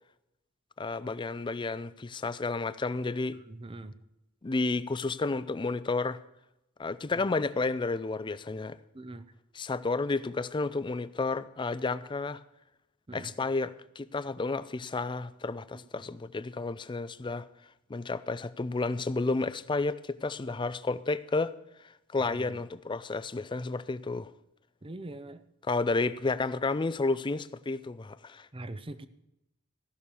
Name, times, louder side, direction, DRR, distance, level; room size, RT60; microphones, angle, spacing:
voice 1, 0.8-3.4 4.4-6.2 6.8-8.8 9.5-12.4 13.1-17.4 17.9-21.5 22.1-24.3 25.7-28.5, left 3 dB, 20° left, 0.4 m, -31 dB
voice 2, 3.5-3.9 8.9-9.2 13.1-13.3 22.2-22.6 24.8-25.4 28.5-29.1, right 2 dB, 25° right, 0.6 m, -42 dB
15.5 x 6.5 x 6.9 m
head